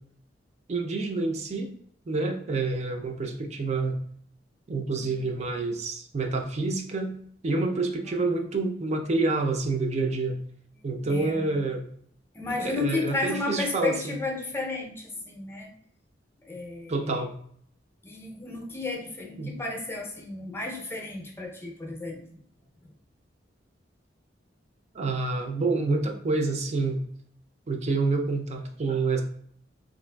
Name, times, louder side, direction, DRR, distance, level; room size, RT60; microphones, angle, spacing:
voice 1, 0.7-1.7 2.1-4.0 4.7-7.1 7.4-10.4 10.8-11.9 12.6-14.1 16.9-17.3 19.4-19.6 24.9-27.0 27.7-29.2, right 3 dB, 40° right, 4 dB, 0.4 m, -28 dB
voice 2, 11.1-11.7 12.3-15.7 16.4-17.2 18.0-22.2, left 3 dB, 15° left, 0 dB, 0.5 m, -33 dB
3.6 x 2.4 x 2.2 m, 0.62 s
head